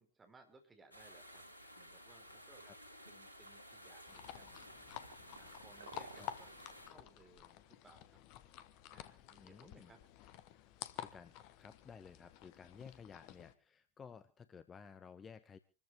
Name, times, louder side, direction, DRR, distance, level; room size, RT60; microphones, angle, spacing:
voice 1, 0.0-1.4 1.7-2.7 3.0-4.6 5.4-8.2 8.9-10.0, right 3 dB, 15° right, 5 dB, 4.2 m, -64 dB
sound 1, 0.9-6.9, equal, 85° left, 4.0 m, -55 dB
sound 2, 3.6-3.7 3.9-4.0 4.9-6.9 7.3-7.4 8.2-8.3 8.5-8.6, right 6 dB, 70° right, 0.8 m, -56 dB
sound 3, 4.1-13.5, left 12 dB, 45° left, 1.2 m, -51 dB
voice 2, 9.4-9.9 11.0-11.3 11.6-15.6, left 6 dB, 20° left, 13 dB, 0.8 m, -55 dB
27.0 x 14.0 x 3.0 m, 0.32 s
figure-of-eight pair, 90°, 0 cm